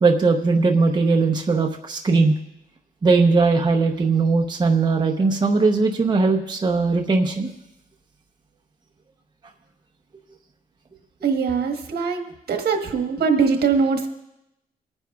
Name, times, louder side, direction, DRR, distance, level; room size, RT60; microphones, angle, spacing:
voice 1, 0.0-2.3 3.0-7.5, right 4 dB, 25° right, 2 dB, 0.8 m, -19 dB
voice 2, 11.2-14.1, right 5 dB, 75° right, 4 dB, 1.4 m, -22 dB
25.5 x 9.7 x 2.4 m, 0.86 s
wide cardioid pair, 155°, 16 cm